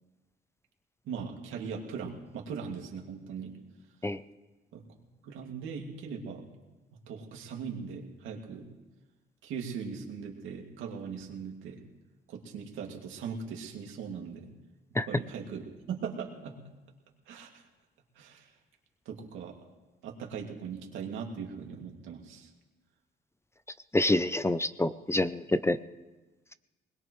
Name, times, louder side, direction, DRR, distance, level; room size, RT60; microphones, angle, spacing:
voice 1, 1.1-3.6 4.7-4.8 5.2-6.4 7.1-8.7 9.4-11.8 12.3-14.5 15.1-16.6 17.3-17.5 18.2-18.5 19.1-19.5 20.0-22.5, right 6 dB, 90° right, 1 dB, 2.3 m, -39 dB
voice 2, 23.9-25.8, left 2 dB, 15° left, 13 dB, 0.5 m, -27 dB
21.0 x 20.0 x 3.2 m, 1.2 s
cardioid pair, 90°, 20 cm